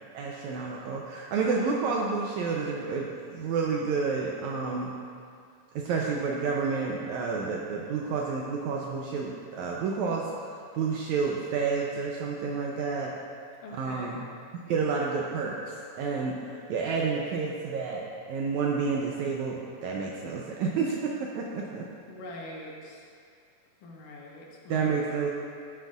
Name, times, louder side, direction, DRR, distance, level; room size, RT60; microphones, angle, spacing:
voice 1, 0.1-4.9 5.7-10.3 10.7-13.1 13.7-14.3 14.7-21.9 24.7-25.3, right 5 dB, 80° right, -2 dB, 1.8 m, -30 dB
voice 2, 13.6-14.2 22.1-23.1 23.8-25.3, left 1 dB, 75° left, -2 dB, 2.6 m, -43 dB
11.5 x 9.0 x 2.4 m, 2.2 s
omnidirectional pair, 3.9 m